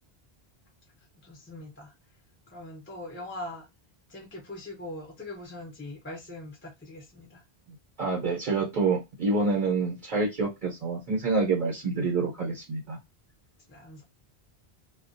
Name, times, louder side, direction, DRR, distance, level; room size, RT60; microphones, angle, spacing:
voice 1, 1.2-1.9 2.5-3.7 4.1-7.4 13.7-14.0, left 1 dB, 15° left, 0.6 m, -41 dB
voice 2, 8.0-13.0, right 3 dB, 50° right, 0.8 m, -27 dB
2.3 x 2.2 x 2.6 m
omnidirectional pair, 1.1 m